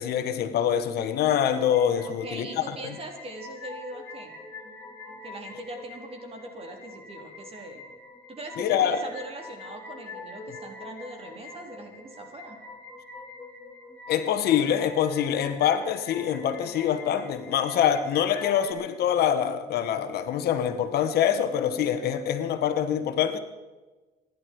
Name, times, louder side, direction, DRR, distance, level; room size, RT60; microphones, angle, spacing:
voice 1, 0.0-2.6 8.6-9.0 14.1-23.4, left 9 dB, 70° left, 9 dB, 1.4 m, -25 dB
sound 1, 1.1-18.7, left 3 dB, 10° left, 4.9 m, -44 dB
voice 2, 2.1-4.4 5.2-7.8 8.3-12.6, right 1 dB, 35° right, 2 dB, 4.0 m, -41 dB
26.5 x 11.0 x 4.8 m, 1.2 s
cardioid pair, 110°, 17 cm